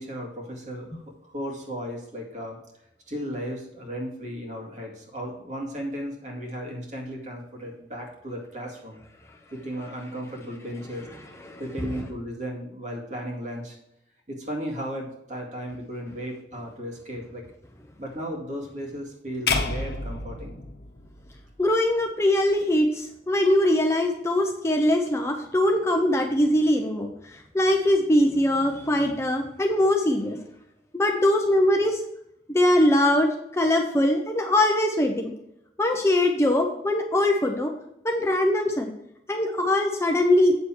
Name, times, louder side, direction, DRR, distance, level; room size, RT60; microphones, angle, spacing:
voice 1, 0.0-2.6 3.1-9.0 9.5-11.1 11.6-13.8 14.3-17.4 18.0-20.6, equal, 40° right, -1 dB, 2.2 m, -35 dB
sound 1, 19.5-21.7, left 3 dB, 60° left, 1.1 m, -29 dB
voice 2, 21.6-30.4 30.9-32.0 32.5-35.3 35.8-37.7 38.0-38.9 39.3-40.5, left 1 dB, 15° left, 3 dB, 0.7 m, -22 dB
8.3 x 6.7 x 4.6 m, 0.81 s
head